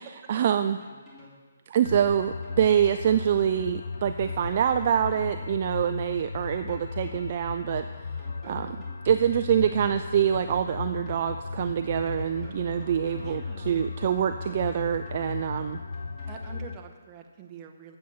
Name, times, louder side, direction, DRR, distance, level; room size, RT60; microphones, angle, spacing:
voice 1, 0.3-0.8 1.7-7.9 8.4-8.8 9.0-15.8, right 9 dB, 45° right, 8 dB, 0.3 m, -25 dB
sound 1, 0.8-1.4 2.2-3.2 3.9-5.4 6.2-7.2 7.9-9.4 10.2-11.2 11.9-13.4 14.2-15.2 15.9-16.6, equal, 10° left, 2.5 m, -52 dB
sound 2, 1.8-16.8, left 4 dB, 70° left, 0.5 m, -36 dB
voice 2, 8.4-8.8 13.2-13.9 16.3-18.0, right 7 dB, 20° right, 3 dB, 0.9 m, -46 dB
8.4 x 7.5 x 5.7 m, 1.4 s
hypercardioid pair, 150°, 0 cm